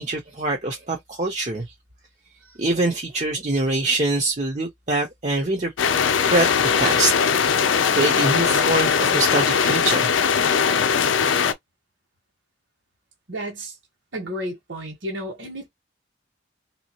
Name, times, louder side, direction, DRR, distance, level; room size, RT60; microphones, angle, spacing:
voice 1, 0.0-1.7 2.6-5.7 6.3-7.1 7.4-10.1, right 2 dB, 35° right, 0.7 m, -24 dB
sound 1, 5.8-11.5, left 6 dB, 85° left, 0.5 m, -20 dB
voice 2, 13.3-13.8 14.1-15.7, equal, 75° right, 1.5 m, -32 dB
3.5 x 2.8 x 2.9 m
head